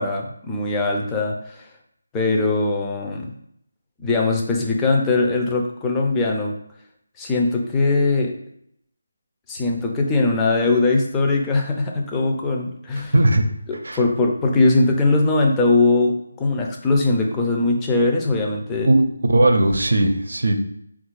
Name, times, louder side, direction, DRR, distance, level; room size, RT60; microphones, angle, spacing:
voice 1, 0.0-1.7 2.1-3.3 4.0-6.5 7.2-8.3 9.5-13.1 13.7-18.9, left 3 dB, 10° left, 0 dB, 0.5 m, -20 dB
voice 2, 13.1-13.4 13.8-14.0 18.8-20.5, right 1 dB, 75° right, 6 dB, 0.6 m, -17 dB
3.9 x 2.5 x 4.6 m, 0.71 s
figure-of-eight pair, 160°, 0 cm